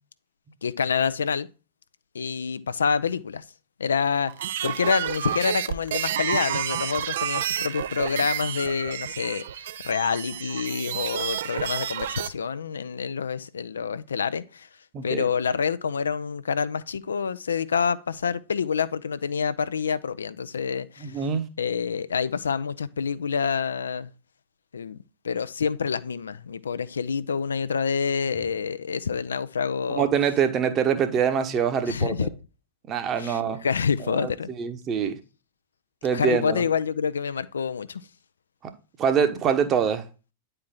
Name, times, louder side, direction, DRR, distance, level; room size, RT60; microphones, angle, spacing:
voice 1, 0.6-1.5 2.1-3.4 3.8-4.3 4.6-9.4 9.8-14.7 15.0-21.3 21.6-24.1 24.7-25.0 25.2-30.1 31.9-32.3 33.2-34.5 36.1-38.0, left 6 dB, 70° left, 0.4 m, -27 dB
sound 1, 4.3-12.3, right 10 dB, 60° right, 0.5 m, -30 dB
voice 2, 14.9-15.3 21.0-21.4 29.9-32.3 32.9-33.6 34.0-34.3 34.6-35.2 36.0-36.6 39.0-40.0, right 7 dB, 30° right, 1.1 m, -24 dB
9.4 x 4.4 x 3.7 m
figure-of-eight pair, 90°, 0 cm